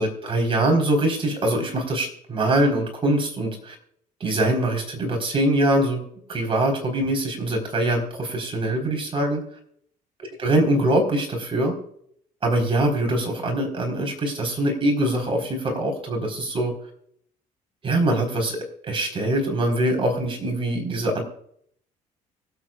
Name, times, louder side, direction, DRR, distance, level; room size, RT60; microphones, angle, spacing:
voice 1, 0.0-3.8 4.2-6.0 6.3-9.4 10.4-11.8 12.4-16.7 17.8-18.6 18.8-21.2, right 1 dB, 35° right, 2 dB, 4.0 m, -23 dB
24.0 x 8.2 x 2.4 m, 0.64 s
cardioid pair, 100°, 15 cm